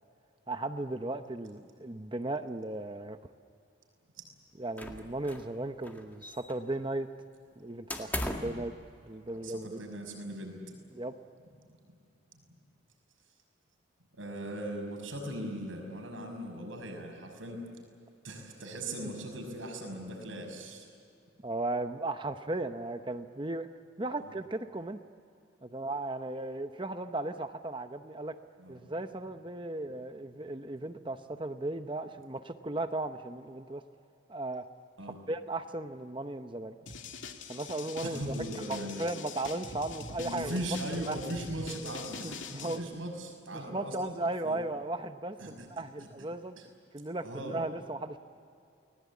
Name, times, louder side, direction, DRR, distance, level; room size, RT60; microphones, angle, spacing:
voice 1, 0.5-3.2 4.6-7.1 7.6-8.7 9.1-9.8 10.9-11.1 21.4-23.7 24.0-25.0 25.6-28.4 28.7-33.8 34.3-34.6 35.3-36.8 37.5-40.6 41.0-41.2 42.2-42.8 43.5-46.6 46.9-48.2, right 2 dB, 25° right, 8 dB, 0.8 m, -36 dB
sound 1, 4.8-5.6 5.8-6.8 7.9-8.6, left 1 dB, 10° left, 1.9 m, -37 dB
voice 2, 9.4-10.6 14.1-17.6 18.2-20.9 24.2-24.3 28.6-28.8 35.0-35.2 38.0-39.0 40.2-44.1 44.4-44.6 45.4-45.7 46.0-46.1 46.6-46.7 47.2-47.6, right 1 dB, 85° right, 3 dB, 5.9 m, -39 dB
sound 2, 36.9-42.8, left 4 dB, 75° left, 2.3 m, -43 dB
29.5 x 20.0 x 8.4 m, 2.5 s
head